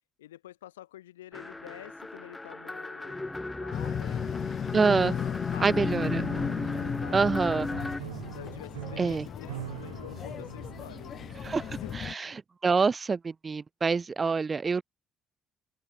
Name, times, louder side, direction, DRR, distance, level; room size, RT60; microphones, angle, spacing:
voice 1, 0.2-6.2 6.7-7.2 8.3-11.3 11.7-12.2, left 13 dB, 80° left, 5.7 m, -48 dB
sound 1, 1.3-8.0, left 2 dB, 15° left, 1.4 m, -36 dB
sound 2, 3.7-12.1, left 8 dB, 50° left, 2.4 m, -35 dB
voice 2, 4.7-5.1 5.6-6.3 7.1-7.7 9.0-9.3 11.4-11.7 11.9-12.3 12.6-14.8, right 4 dB, 30° right, 0.8 m, -26 dB
Piano, 6.0-12.0, right 14 dB, 80° right, 2.6 m, -43 dB
open air
figure-of-eight pair, 50°, 0 cm